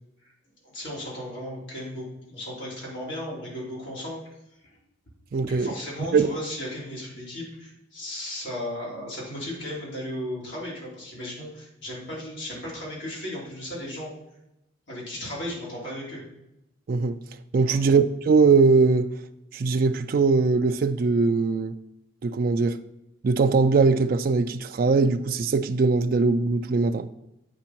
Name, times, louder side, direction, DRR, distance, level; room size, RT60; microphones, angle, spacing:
voice 1, 0.6-4.2 4.6-4.8 5.3-14.1 14.9-16.2 17.6-17.8, left 1 dB, 65° left, 3.2 m, -35 dB
voice 2, 5.3-5.7 6.1-6.3 16.9-17.2 17.5-19.1 19.5-21.8 22.2-22.8 23.2-27.1, right 4 dB, 45° right, 0.3 m, -21 dB
8.3 x 5.2 x 4.5 m
head